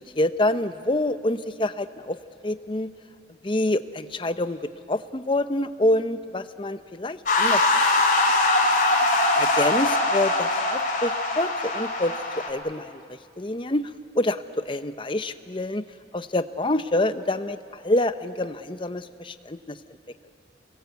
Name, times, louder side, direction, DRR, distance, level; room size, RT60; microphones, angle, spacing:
voice 1, 0.2-2.2 2.4-2.9 3.4-4.6 4.9-7.6 9.3-12.1 12.5-12.9 13.4-13.9 14.2-15.8 16.1-17.6 17.8-19.8, left 1 dB, 30° left, 11 dB, 0.7 m, -26 dB
sound 1, 7.3-12.5, left 2 dB, 50° left, 3.4 m, -22 dB
29.0 x 21.0 x 8.2 m, 2.3 s
head